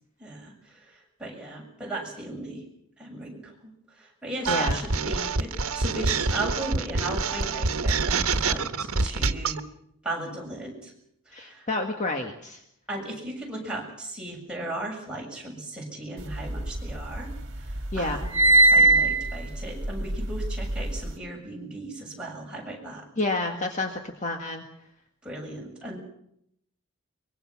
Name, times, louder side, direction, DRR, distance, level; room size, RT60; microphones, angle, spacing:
voice 1, 0.2-2.7 3.0-9.6 10.0-10.9 11.3-11.7 12.9-23.1 25.2-26.0, right 1 dB, 5° right, -2 dB, 7.1 m, -37 dB
sound 1, 4.4-9.6, right 4 dB, 85° right, 1.2 m, -26 dB
voice 2, 4.5-4.8 11.3-12.6 17.9-18.2 23.2-24.6, left 2 dB, 35° left, 3 dB, 1.8 m, -29 dB
sound 2, 16.3-17.4 17.7-21.1, right 2 dB, 55° right, 2.0 m, -21 dB
24.0 x 22.5 x 6.1 m, 0.74 s
head